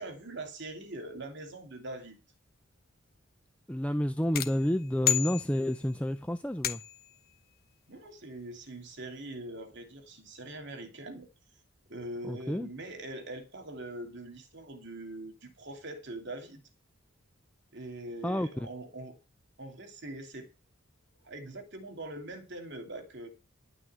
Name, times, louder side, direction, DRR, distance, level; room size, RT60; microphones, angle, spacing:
voice 1, 0.0-2.2 7.9-11.3 11.9-16.6 17.7-19.2 19.6-20.5 21.2-23.3, right 2 dB, 60° right, 2.8 m, -42 dB
voice 2, 3.7-6.8 12.2-12.7 18.2-18.7, equal, 5° left, 0.6 m, -30 dB
sound 1, 4.3-6.0 6.6-7.2, left 11 dB, 50° left, 1.1 m, -32 dB
11.0 x 6.2 x 8.1 m
head